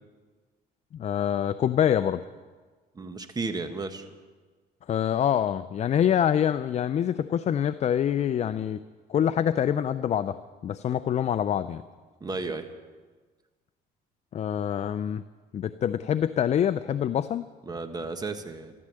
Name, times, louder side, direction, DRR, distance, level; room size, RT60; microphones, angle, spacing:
voice 1, 0.9-2.2 4.9-8.8 9.1-10.4 10.6-11.8 14.3-15.2 15.5-17.4, left 9 dB, 40° left, 12 dB, 0.5 m, -25 dB
voice 2, 2.9-4.1 12.2-12.7 17.7-18.7, right 3 dB, 25° right, 8 dB, 1.4 m, -33 dB
13.5 x 13.0 x 7.6 m, 1.4 s
cardioid pair, 110°, 17 cm